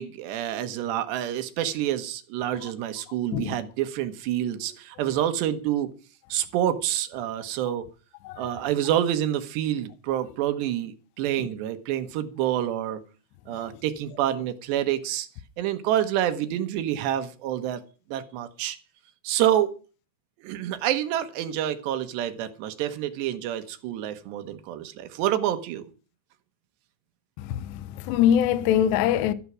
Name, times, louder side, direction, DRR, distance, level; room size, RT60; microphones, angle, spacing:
voice 1, 0.0-5.9 6.3-7.9 8.4-13.0 13.5-15.3 15.6-17.8 18.1-18.8 19.2-19.7 20.4-25.9, right 11 dB, 70° right, 3.1 m, -27 dB
voice 2, 27.4-29.3, left 10 dB, 75° left, 2.8 m, -23 dB
13.5 x 11.5 x 6.2 m
omnidirectional pair, 5.6 m